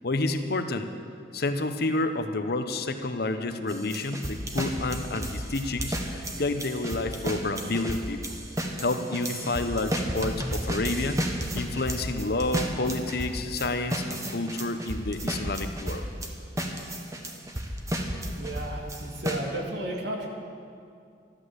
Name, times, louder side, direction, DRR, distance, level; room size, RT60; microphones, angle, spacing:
voice 1, 0.0-0.9 1.3-8.2 8.8-11.2 11.5-16.0, left 2 dB, 60° left, 8 dB, 1.0 m, -29 dB
sound 1, 3.7-16.3 16.6-19.4, right 1 dB, 20° right, 1.3 m, -32 dB
voice 2, 18.4-20.3, right 1 dB, 75° right, 0 dB, 2.5 m, -33 dB
13.5 x 12.0 x 8.0 m, 2.4 s
head